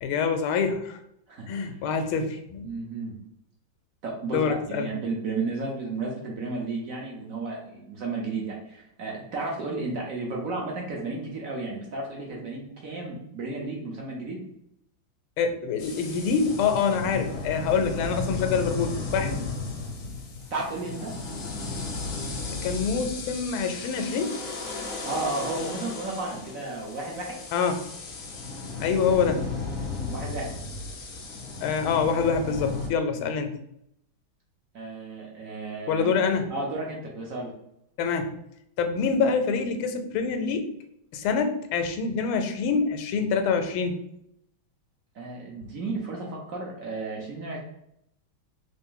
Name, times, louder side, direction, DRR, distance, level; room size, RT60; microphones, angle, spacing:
voice 1, 0.0-1.0 1.5-2.6 4.3-4.9 15.4-19.4 22.6-24.4 27.5-27.9 28.8-29.5 31.6-33.5 35.9-36.5 38.0-38.3 38.8-40.7 41.1-44.0, left 5 dB, 85° left, 7 dB, 1.4 m, -26 dB
voice 2, 1.3-1.8 2.6-3.2 4.0-14.4 19.2-19.4 20.5-21.1 25.0-27.4 30.1-30.5 33.2-33.3 34.7-36.2 36.5-37.5 45.1-47.6, right 3 dB, 65° right, -2 dB, 0.8 m, -33 dB
sound 1, 15.8-32.9, left 4 dB, 65° left, 0.8 m, -35 dB
3.3 x 2.5 x 3.6 m, 0.76 s
omnidirectional pair, 2.2 m